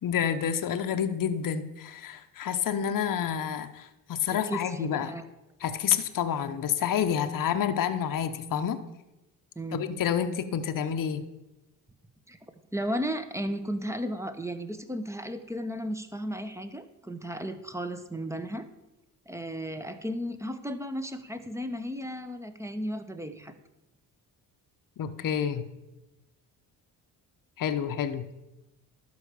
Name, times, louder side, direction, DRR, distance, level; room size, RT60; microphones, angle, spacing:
voice 1, 0.0-5.1 5.6-8.8 9.7-11.2 25.0-25.6 27.6-28.2, left 8 dB, 50° left, 8 dB, 0.9 m, -29 dB
voice 2, 4.3-5.3 9.6-9.9 12.3-12.4 12.7-18.7 19.3-23.5, equal, 5° right, 9 dB, 1.1 m, -34 dB
12.0 x 4.9 x 6.9 m, 0.99 s
supercardioid pair, 70°, 42 cm